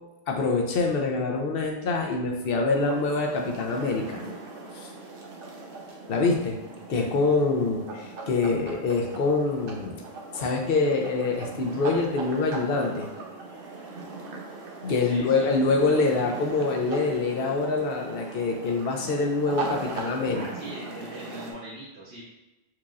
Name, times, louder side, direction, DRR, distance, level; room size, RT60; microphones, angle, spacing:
voice 1, 0.3-4.2 4.7-4.9 6.1-6.6 6.9-9.9 10.3-13.1 14.8-20.4, left 3 dB, 65° left, 1 dB, 0.8 m, -25 dB
sound 1, 2.7-21.5, right 3 dB, 60° right, 0.9 m, -39 dB
voice 2, 15.1-15.5 20.3-22.2, right 1 dB, 85° right, -7 dB, 1.2 m, -41 dB
4.6 x 2.9 x 2.4 m, 1.0 s
omnidirectional pair, 1.1 m